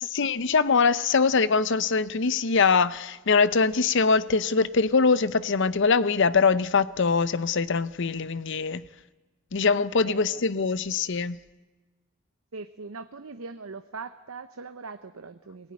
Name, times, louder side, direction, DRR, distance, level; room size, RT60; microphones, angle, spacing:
voice 1, 0.1-8.8 9.5-11.4, left 4 dB, 60° left, 0.7 m, -23 dB
voice 2, 10.0-10.4 12.5-15.7, right 4 dB, 80° right, 0.8 m, -41 dB
24.0 x 17.5 x 9.6 m
head